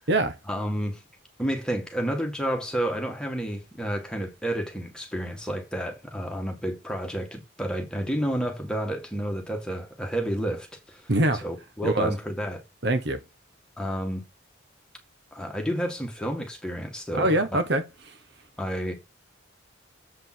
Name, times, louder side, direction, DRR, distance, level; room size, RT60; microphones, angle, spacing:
voice 1, 0.5-1.0 1.4-11.0 11.4-12.6 13.8-14.2 15.3-17.4 18.6-18.9, right 1 dB, 5° left, 1.9 m, -30 dB
voice 2, 11.1-11.5 11.8-12.1 12.8-13.2 17.1-17.8, right 1 dB, 55° right, 1.1 m, -23 dB
7.6 x 5.1 x 6.1 m
head